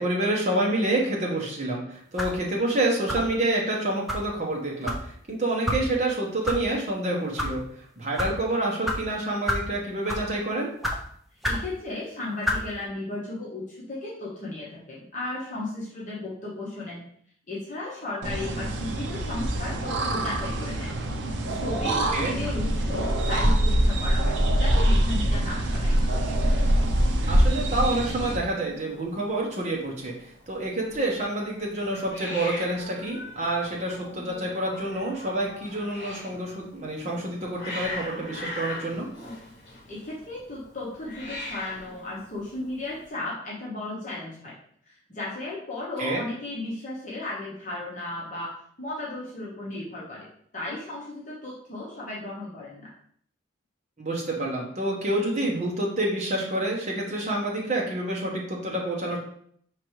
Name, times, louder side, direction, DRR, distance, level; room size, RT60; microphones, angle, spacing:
voice 1, 0.0-7.6 8.0-10.7 21.9-22.4 27.3-30.1 30.5-39.1 46.0-46.2 54.0-59.2, right 1 dB, 35° right, -2 dB, 1.0 m, -28 dB
sound 1, 2.2-2.4 3.1-3.4 4.1-4.2 4.9-5.0 5.7-5.8 6.4-6.6 7.2-7.5 8.2-8.3 8.9-9.0 9.5-9.7 10.1-10.3 10.8-11.0 11.4-11.7 12.4-12.6, left 1 dB, ahead, 0.5 m, -28 dB
voice 2, 11.4-17.0 17.5-20.9 21.5-26.0 39.9-44.5 44.9-50.3 50.5-52.9, left 2 dB, 40° left, -6 dB, 1.0 m, -35 dB
sound 2, 18.2-28.4, right 1 dB, 65° right, 0.5 m, -24 dB
Hiss, 25.7-43.1, left 2 dB, 55° left, 1.7 m, -41 dB
5.2 x 3.2 x 3.1 m, 0.64 s
head